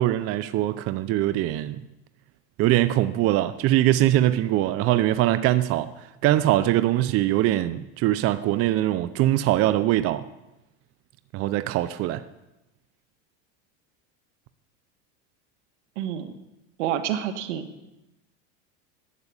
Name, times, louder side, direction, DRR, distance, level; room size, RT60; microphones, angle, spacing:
voice 1, 0.0-1.8 2.6-5.9 6.2-10.2 11.3-12.2, right 14 dB, 40° right, 0.6 m, -22 dB
voice 2, 16.0-16.3 16.8-17.7, right 10 dB, 80° right, 1.6 m, -28 dB
12.5 x 8.3 x 8.8 m
supercardioid pair, 130°, 35 cm